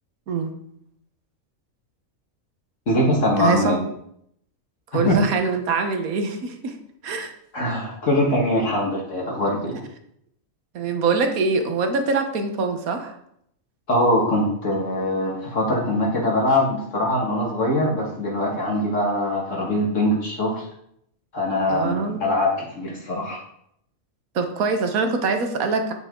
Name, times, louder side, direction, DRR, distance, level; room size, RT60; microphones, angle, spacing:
voice 1, 2.9-3.8 4.9-5.2 7.5-9.8 13.9-20.7 21.3-23.4, left 1 dB, 60° left, -2 dB, 1.9 m, -22 dB
voice 2, 3.4-3.9 4.9-6.8 7.0-7.3 10.7-13.1 21.7-22.2 24.3-25.9, right 4 dB, 90° right, 6 dB, 1.5 m, -23 dB
10.0 x 6.1 x 3.8 m, 0.72 s
omnidirectional pair, 1.4 m